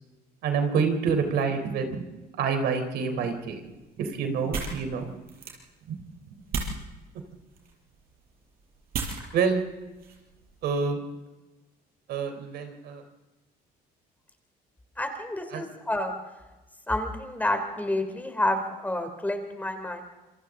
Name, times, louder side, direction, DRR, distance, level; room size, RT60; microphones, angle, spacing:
voice 1, 0.4-2.1 2.4-3.6 4.0-5.2 5.9-6.0 9.3-9.6 10.6-11.0 12.1-13.0 15.5-15.6, right 5 dB, 75° right, 7 dB, 3.8 m, -27 dB
sound 1, 3.3-10.8, right 4 dB, 60° right, 6.4 m, -38 dB
voice 2, 15.0-16.2 16.9-20.0, left 1 dB, 10° left, 6 dB, 3.1 m, -29 dB
28.0 x 24.5 x 3.8 m, 1.1 s
cardioid pair, 110°, 17 cm